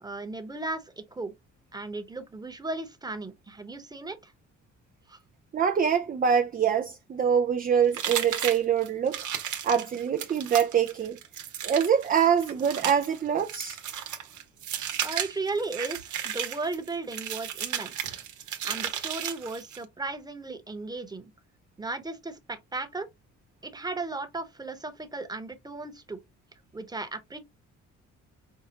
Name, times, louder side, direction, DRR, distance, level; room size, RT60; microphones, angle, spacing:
voice 1, 0.0-1.3 1.7-4.3 5.1-5.2 15.0-18.1 18.6-21.3 21.8-23.1 23.6-26.2 26.7-27.4, right 3 dB, 15° right, 1.0 m, -36 dB
voice 2, 5.5-9.3 9.6-11.2 11.6-13.8, right 7 dB, 30° right, 0.4 m, -24 dB
sound 1, 7.9-19.9, right 9 dB, 80° right, 1.1 m, -34 dB
5.6 x 2.3 x 2.9 m
cardioid pair, 90°, 30 cm